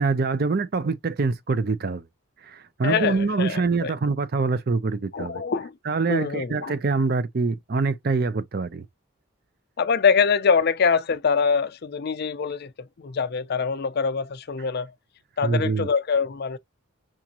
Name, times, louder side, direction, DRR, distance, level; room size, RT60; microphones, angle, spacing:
voice 1, 0.0-2.0 2.4-5.4 5.9-8.9 15.4-15.9, right 4 dB, 45° right, 0.5 m, -25 dB
voice 2, 2.8-3.9 5.1-5.7 6.1-6.7 9.8-14.9 15.4-16.6, left 5 dB, 50° left, 0.5 m, -24 dB
6.0 x 2.5 x 2.8 m
head